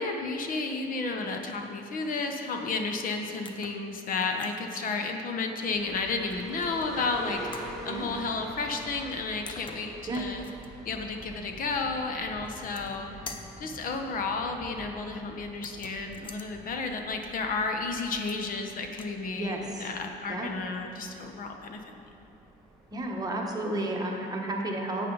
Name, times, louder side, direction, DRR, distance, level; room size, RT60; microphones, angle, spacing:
voice 1, 0.0-10.4 10.8-13.1 13.6-21.9, left 3 dB, 55° left, 4 dB, 0.9 m, -32 dB
sound 1, 3.4-3.8 4.2-4.6 6.3-6.9 7.5-7.7 9.1-9.2 9.5-10.7 12.4-13.0 13.3-13.6 15.5-16.5 18.1-18.6 18.9-19.2, left 4 dB, 30° left, 0.7 m, -46 dB
sound 2, 5.7-23.2, right 1 dB, 5° left, 1.7 m, -47 dB
voice 2, 19.3-19.9 20.3-20.5 22.9-25.1, right 1 dB, 20° right, 0 dB, 1.3 m, -32 dB
11.5 x 8.3 x 4.0 m, 2.7 s
cardioid pair, 110°, 17 cm